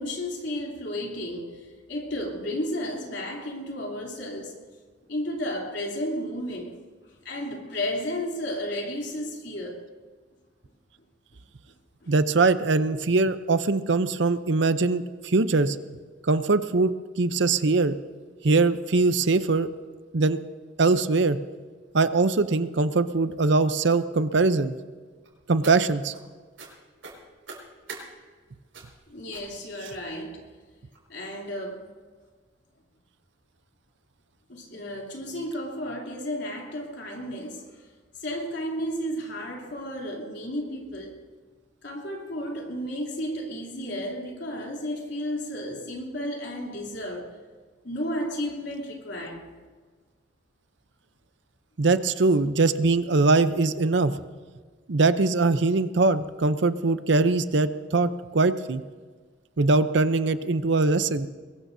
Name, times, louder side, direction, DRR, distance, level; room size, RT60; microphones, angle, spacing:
voice 1, 0.0-4.6 5.0-9.9 12.0-12.1 29.1-30.5 31.1-31.9 34.5-37.9 38.1-41.2 41.8-47.4 47.8-49.5, equal, 60° left, 3.2 m, -33 dB
voice 2, 12.1-15.8 16.2-18.0 18.4-19.7 20.1-20.4 20.8-21.4 21.9-24.7 25.5-26.1 51.8-54.1 54.9-58.8 59.6-61.3, right 3 dB, 60° right, 0.6 m, -22 dB
sound 1, 25.2-26.2 26.6-26.7 27.0-28.0 28.7-29.0 29.3-29.5 29.8-30.2 30.9-31.0 31.4-31.6 31.9-32.0, right 4 dB, 85° right, 5.4 m, -43 dB
22.5 x 21.0 x 2.7 m
head